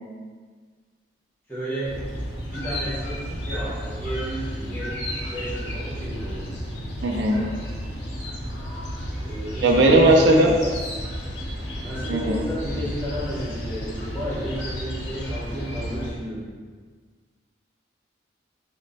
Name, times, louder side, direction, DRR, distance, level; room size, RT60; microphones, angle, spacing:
voice 1, 1.5-2.1 2.5-6.6 9.2-10.7 11.8-16.5, equal, 10° left, -9 dB, 1.1 m, -32 dB
sound 1, 1.8-16.1, equal, 75° left, 0.8 m, -32 dB
voice 2, 7.0-7.5 9.6-10.5 12.1-12.4, right 1 dB, 75° right, 0 dB, 0.4 m, -17 dB
3.0 x 2.1 x 3.9 m, 1.5 s
head